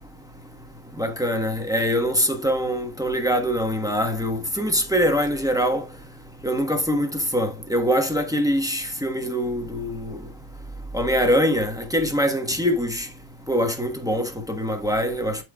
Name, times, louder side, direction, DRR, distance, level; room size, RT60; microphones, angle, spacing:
voice 1, 1.0-5.8 6.4-7.1 7.3-10.1 10.9-13.1 13.5-15.4, equal, 5° right, 0.5 m, -23 dB
13.0 x 4.6 x 2.4 m
omnidirectional pair, 2.2 m